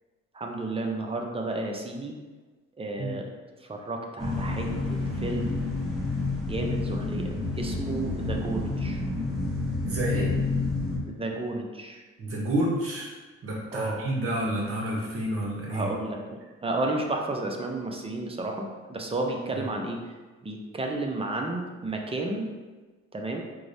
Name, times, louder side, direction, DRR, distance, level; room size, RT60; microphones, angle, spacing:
voice 1, 0.3-2.2 2.8-3.3 3.6-5.6 6.4-9.0 11.1-12.0 13.7-14.0 15.7-20.1 20.4-22.5 23.1-23.4, right 2 dB, 20° right, 1 dB, 0.4 m, -32 dB
sound 1, 4.2-11.0, left 3 dB, ahead, 0.9 m, -29 dB
voice 2, 9.8-10.3 12.2-13.1 13.4-15.9, right 1 dB, 50° right, -3 dB, 0.8 m, -29 dB
4.5 x 2.1 x 2.6 m, 1.3 s
cardioid pair, 90°, 30 cm